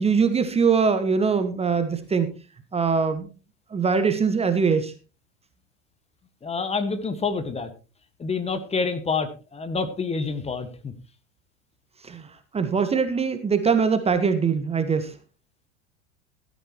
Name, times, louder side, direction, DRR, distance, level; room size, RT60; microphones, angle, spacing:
voice 1, 0.0-2.3 2.7-3.3 3.7-4.9 12.0-12.3 12.5-15.1, right 5 dB, 15° right, 10 dB, 1.4 m, -22 dB
voice 2, 6.4-7.7 8.2-10.9, left 4 dB, 15° left, 10 dB, 1.6 m, -27 dB
15.5 x 13.0 x 3.0 m, 0.32 s
figure-of-eight pair, 85°, 38 cm